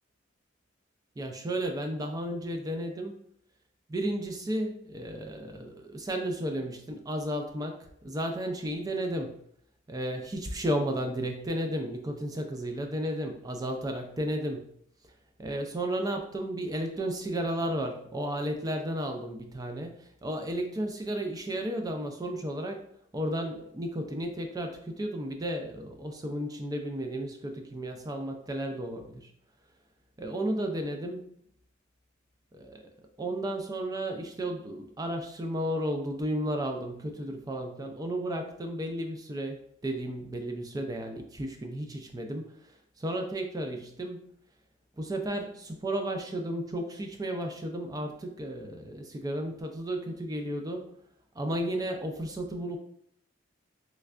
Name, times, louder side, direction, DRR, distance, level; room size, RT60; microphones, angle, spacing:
voice 1, 1.2-3.2 3.9-9.4 9.9-14.7 15.4-22.8 23.1-29.3 30.2-31.3 32.5-32.9 33.2-42.5 43.0-44.3 45.0-50.9 51.4-52.8, right 1 dB, 20° right, 4 dB, 0.3 m, -33 dB
3.4 x 3.2 x 2.4 m, 0.68 s
head